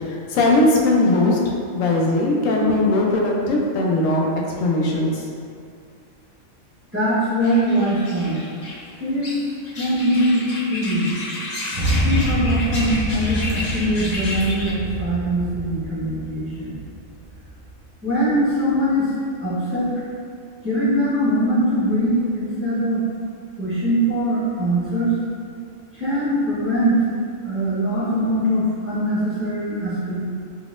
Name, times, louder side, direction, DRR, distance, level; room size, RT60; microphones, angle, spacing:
voice 1, 0.3-1.4 1.7-5.1, left 2 dB, 70° left, -2 dB, 0.9 m, -19 dB
voice 2, 6.9-8.4 9.0-9.3 9.7-10.4 10.7-11.1 12.0-16.8 18.0-19.1 19.4-19.9 20.6-23.0 23.6-25.1 25.9-27.0 27.4-30.1, equal, 10° right, -12 dB, 0.8 m, -22 dB
sound 1, 7.4-14.7, left 2 dB, 45° left, 0.5 m, -32 dB
sound 2, 11.7-17.8, equal, 45° right, 0.7 m, -26 dB
3.8 x 2.9 x 2.4 m, 2.3 s
omnidirectional pair, 1.5 m